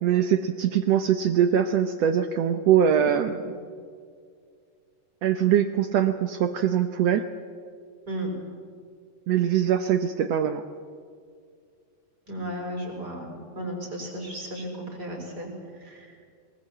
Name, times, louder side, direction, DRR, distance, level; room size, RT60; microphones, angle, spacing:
voice 1, 0.0-3.4 5.2-7.3 9.3-10.6, right 9 dB, 80° right, 9 dB, 1.4 m, -22 dB
voice 2, 12.3-13.3 13.5-15.5 15.8-16.1, right 1 dB, 25° right, 0 dB, 6.4 m, -34 dB
23.5 x 20.5 x 8.7 m, 2.1 s
omnidirectional pair, 4.0 m